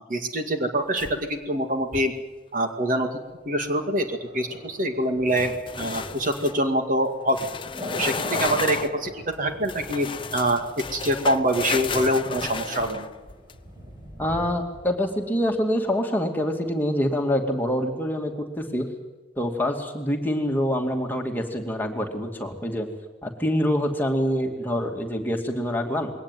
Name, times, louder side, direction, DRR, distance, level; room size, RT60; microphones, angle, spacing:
voice 1, 0.1-2.1 2.5-3.1 3.5-5.5 5.8-7.5 7.9-10.6 10.9-13.1, right 1 dB, 50° right, 5 dB, 2.2 m, -25 dB
sound 1, 1.0-1.4 1.8-2.2 5.3-6.6 7.3-9.0 9.7-13.5, left 5 dB, 30° left, 0.8 m, -33 dB
Thunder, 3.7-15.5 15.8-15.9, equal, 20° right, 4.7 m, -41 dB
voice 2, 14.2-18.9 19.4-22.9 23.2-26.1, equal, 10° left, 2 dB, 2.5 m, -26 dB
21.5 x 18.5 x 9.4 m, 1.2 s
head